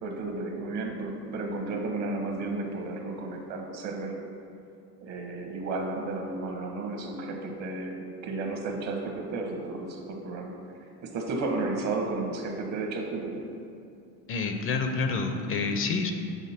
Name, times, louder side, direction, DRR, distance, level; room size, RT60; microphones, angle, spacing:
voice 1, 0.0-4.1 5.0-10.5 11.0-13.4, right 3 dB, 50° right, 2 dB, 1.1 m, -33 dB
voice 2, 14.3-16.1, left 4 dB, 40° left, 6 dB, 0.5 m, -28 dB
7.2 x 3.8 x 4.2 m, 2.4 s
supercardioid pair, 110°, 34 cm